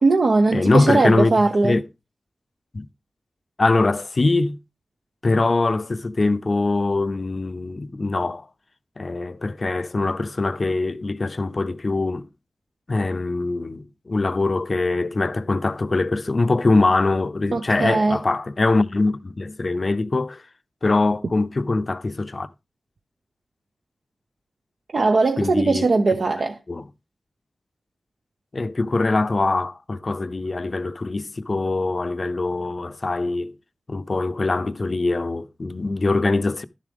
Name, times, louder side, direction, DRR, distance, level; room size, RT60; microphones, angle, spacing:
voice 1, 0.0-1.8 17.5-18.2 24.9-26.6, right 3 dB, 70° right, 0.8 m, -19 dB
voice 2, 0.5-1.3 1.6-1.8 2.7-2.9 3.6-4.6 5.2-8.5 9.0-12.3 12.9-20.4 20.8-22.5 25.4-25.9 26.7-26.9 28.5-33.5 33.9-36.6, left 3 dB, 50° left, 0.6 m, -22 dB
11.5 x 7.3 x 3.5 m
wide cardioid pair, 70°, 0 cm